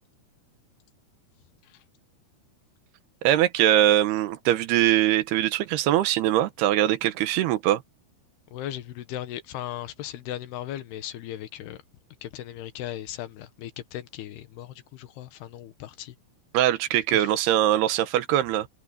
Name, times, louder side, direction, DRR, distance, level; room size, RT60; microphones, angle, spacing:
voice 1, 3.2-7.8 16.5-18.7, right 13 dB, 85° right, 3.1 m, -22 dB
voice 2, 8.5-11.8 12.2-16.1 17.1-17.3, left 12 dB, 85° left, 3.3 m, -37 dB
omnidirectional pair, 4.5 m